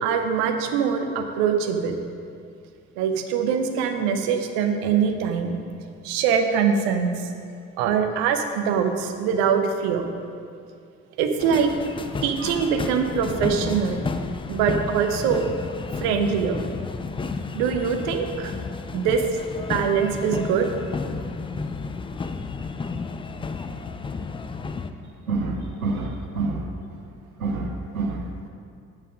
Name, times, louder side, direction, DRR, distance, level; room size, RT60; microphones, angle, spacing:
voice 1, 0.0-1.9 3.0-5.6 6.0-7.1 7.8-10.1 11.2-11.7 12.2-14.0 14.5-15.5 16.0-16.6 17.5-18.5 18.9-19.2 19.7-20.7, right 7 dB, 60° right, 5 dB, 0.9 m, -23 dB
sound 1, 11.4-24.9, left 4 dB, 15° left, 0.4 m, -32 dB
voice 2, 25.3-26.7 27.4-28.5, right 3 dB, 85° right, 2 dB, 0.7 m, -28 dB
9.5 x 6.7 x 5.1 m, 2.3 s
figure-of-eight pair, 45°, 41 cm